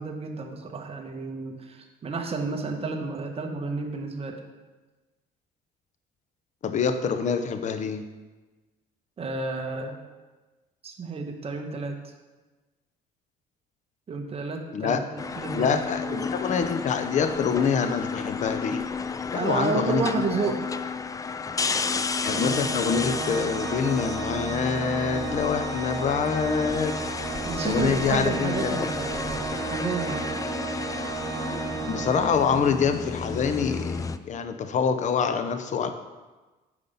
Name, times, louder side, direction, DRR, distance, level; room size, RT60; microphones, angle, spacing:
voice 1, 0.0-4.4 9.2-9.9 10.8-12.0 14.1-15.7 16.0-16.2 19.3-20.6 26.7-26.9 27.5-30.5, right 4 dB, 35° right, 3 dB, 1.3 m, -31 dB
voice 2, 6.6-8.0 14.7-15.0 15.5-18.8 19.3-20.0 20.4-20.5 22.2-26.9 27.6-28.9 31.9-35.9, left 6 dB, 45° left, 9 dB, 0.8 m, -26 dB
sound 1, 15.2-34.2, left 4 dB, 20° left, 0.4 m, -32 dB
Organ, 22.2-33.0, right 4 dB, 60° right, 2.4 m, -33 dB
9.4 x 5.3 x 5.6 m, 1.2 s
cardioid pair, 110°, 17 cm